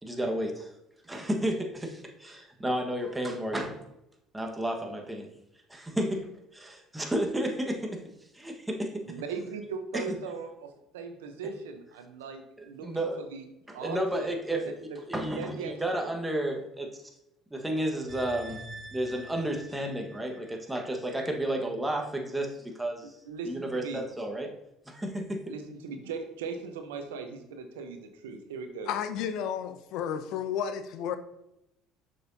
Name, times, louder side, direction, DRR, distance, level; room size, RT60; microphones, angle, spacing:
voice 1, 0.0-0.7 1.1-3.8 4.3-5.3 5.7-8.0 8.3-9.2 9.9-10.1 12.6-13.2 13.7-14.7 15.1-16.9 17.5-18.6 18.9-23.1 23.4-24.5 24.9-25.5, right 1 dB, 10° right, 3 dB, 1.4 m, -32 dB
voice 2, 9.0-13.4 13.7-14.4 14.6-15.0 15.4-15.7 23.0-24.0 25.5-28.9, right 5 dB, 90° right, 6 dB, 0.8 m, -39 dB
sound 1, 18.1-21.3 21.7-21.8, right 1 dB, 45° right, 1.7 m, -46 dB
voice 3, 28.9-31.2, left 8 dB, 70° left, 10 dB, 0.6 m, -32 dB
6.7 x 6.1 x 2.8 m, 0.85 s
hypercardioid pair, 75°, 0 cm